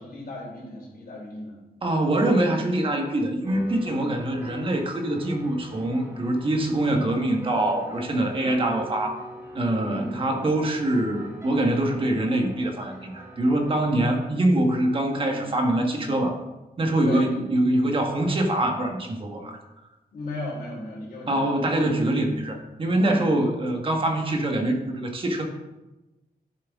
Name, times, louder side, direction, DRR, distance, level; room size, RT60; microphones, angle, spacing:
voice 1, 0.0-1.6 8.3-8.7 9.8-10.1 15.2-15.5 17.0-17.3 20.1-21.8 23.0-23.3, left 2 dB, 65° left, -4 dB, 3.5 m, -37 dB
voice 2, 1.8-9.2 9.5-16.4 16.8-19.6 21.3-25.4, right 1 dB, 35° right, 3 dB, 1.4 m, -24 dB
sound 1, 3.5-14.0, left 1 dB, 15° right, 1.9 m, -43 dB
11.0 x 7.5 x 3.6 m, 1.1 s
wide cardioid pair, 175°, 16 cm